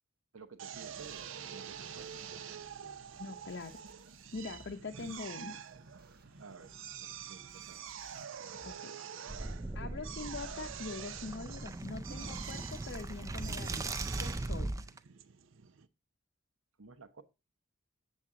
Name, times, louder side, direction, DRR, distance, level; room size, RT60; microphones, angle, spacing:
voice 1, 0.3-2.4 6.4-7.8 16.8-17.2, right 4 dB, 85° right, 1.0 m, -54 dB
Drill, 0.6-15.9, right 8 dB, 70° right, 0.5 m, -47 dB
sound 1, 0.7-8.7, right 1 dB, 45° right, 1.1 m, -61 dB
voice 2, 3.2-3.8 4.3-5.6 8.6-9.0 9.7-14.7, left 3 dB, 55° left, 0.6 m, -43 dB
sound 2, 9.3-15.0, right 2 dB, 15° right, 0.3 m, -39 dB
7.5 x 7.1 x 3.7 m
head